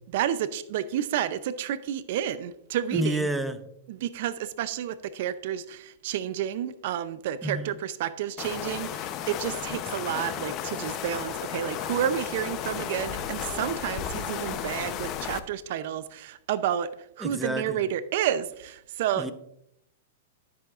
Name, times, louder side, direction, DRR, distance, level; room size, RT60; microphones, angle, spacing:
voice 1, 0.1-3.3 3.9-16.9 17.2-19.3, right 10 dB, 60° right, 0.5 m, -30 dB
voice 2, 2.9-3.7 7.4-7.8 17.2-17.8 19.2-19.3, right 1 dB, 5° right, 0.7 m, -30 dB
sound 1, 8.4-15.4, left 9 dB, 35° left, 0.7 m, -34 dB
13.0 x 7.7 x 2.5 m
hypercardioid pair, 130°, 0 cm